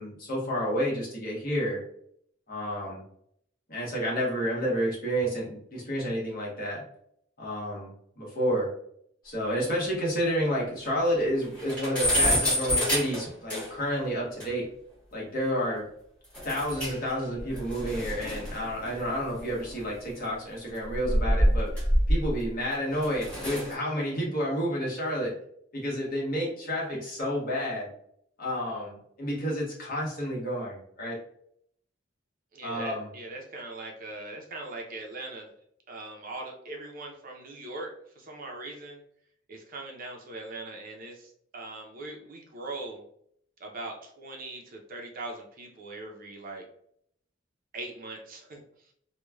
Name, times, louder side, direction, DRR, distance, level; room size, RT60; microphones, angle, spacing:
voice 1, 0.0-1.8 2.5-3.0 3.7-6.8 7.4-8.7 9.2-14.7 15.1-15.9 16.4-21.7 22.1-25.3 25.7-27.9 28.4-31.2 32.6-33.1, equal, 50° left, -4 dB, 1.1 m, -30 dB
sound 1, 9.6-9.7 10.0-10.1 10.5-10.6 10.9-11.0 11.3-13.9 14.4-14.5 16.3-17.1 17.4-20.0 20.8-22.5 22.9-23.7, equal, 5° left, 1.4 m, -27 dB
voice 2, 32.5-35.5 35.9-39.0 39.5-43.0 43.6-46.6 47.7-48.6, right 2 dB, 50° right, 2 dB, 0.6 m, -40 dB
3.1 x 2.2 x 2.3 m, 0.67 s
head